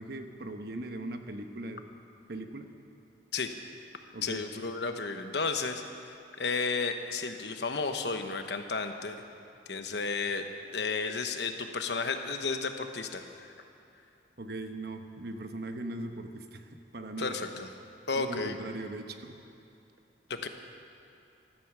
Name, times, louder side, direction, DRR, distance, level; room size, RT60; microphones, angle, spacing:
voice 1, 0.0-1.8 2.3-2.7 4.1-4.4 14.4-17.4 18.1-19.4, right 2 dB, 55° right, 6 dB, 1.0 m, -39 dB
voice 2, 4.2-5.8 6.4-9.2 9.7-10.4 10.7-13.5 17.2-17.7 18.1-18.6 20.3-20.5, left 4 dB, 65° left, 7 dB, 1.0 m, -32 dB
15.5 x 13.5 x 6.1 m, 2.6 s
head